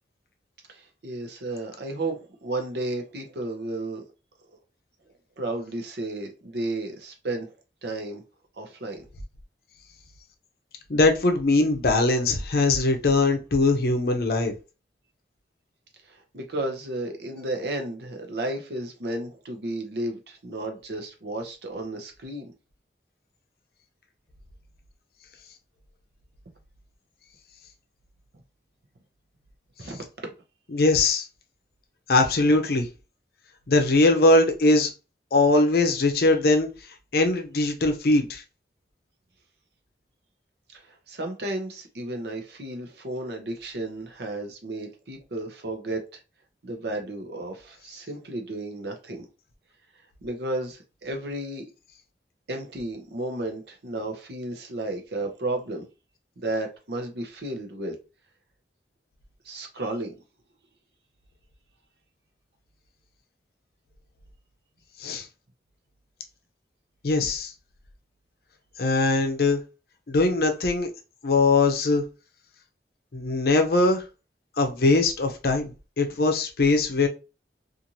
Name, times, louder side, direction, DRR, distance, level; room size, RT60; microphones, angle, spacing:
voice 1, 0.7-4.0 5.4-7.5 7.8-8.2 8.6-9.0 16.0-22.5 29.8-30.3 40.7-46.2 46.6-49.3 50.2-51.7 52.5-55.9 56.4-58.0 59.4-60.1, right 2 dB, 70° right, 0.7 m, -33 dB
voice 2, 10.9-14.5 30.7-31.2 32.1-32.9 33.7-34.9 35.3-36.7 37.1-38.4 65.0-65.3 67.0-67.5 68.8-69.6 70.1-70.9 71.2-72.0 73.1-74.0 74.6-77.1, left 2 dB, 60° left, 0.6 m, -21 dB
2.6 x 2.5 x 2.8 m
head